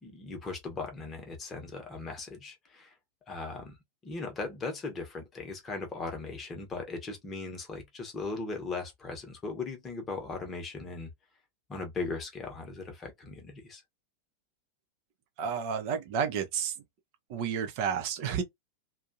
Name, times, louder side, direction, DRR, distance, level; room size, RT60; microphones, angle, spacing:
voice 1, 0.0-2.9 3.3-3.8 4.0-11.1 11.7-13.8, left 3 dB, 20° left, 1.0 m, -38 dB
voice 2, 15.4-16.7 17.3-18.4, right 7 dB, 45° right, 0.7 m, -31 dB
2.6 x 2.3 x 2.6 m
figure-of-eight pair, 90°, 0 cm